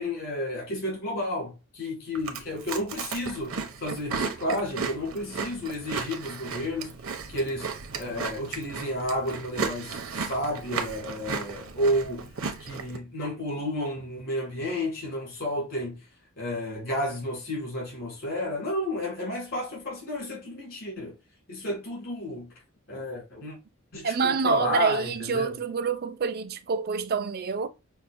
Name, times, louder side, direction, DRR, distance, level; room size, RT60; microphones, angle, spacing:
voice 1, 0.0-3.5 3.8-6.9 7.3-7.7 8.0-12.3 12.6-16.0 16.4-21.2 21.5-22.5 22.9-23.6 23.9-25.6, left 1 dB, 65° left, 2.1 m, -31 dB
Chewing mastication, 2.1-13.0, right 5 dB, 75° right, 0.7 m, -35 dB
voice 2, 24.0-27.7, right 5 dB, 45° right, 0.4 m, -27 dB
5.7 x 2.0 x 2.5 m
head